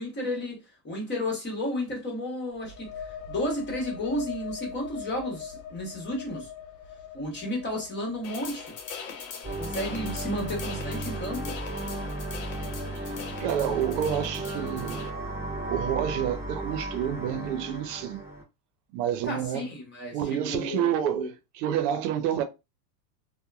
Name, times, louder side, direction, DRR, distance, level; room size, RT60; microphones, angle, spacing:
voice 1, 0.0-6.5 7.1-8.7 9.4-11.6 19.2-21.3, left 1 dB, 20° left, 1.2 m, -33 dB
sound 1, 2.5-10.1, left 7 dB, 55° left, 0.7 m, -42 dB
sound 2, 8.2-15.1, left 6 dB, 80° left, 0.9 m, -42 dB
sound 3, 9.4-18.4, right 1 dB, 5° right, 1.2 m, -34 dB
voice 2, 13.4-15.1 15.7-18.2 18.9-19.6 20.1-22.4, right 10 dB, 75° right, 0.7 m, -29 dB
2.9 x 2.2 x 2.3 m
supercardioid pair, 125°, 48 cm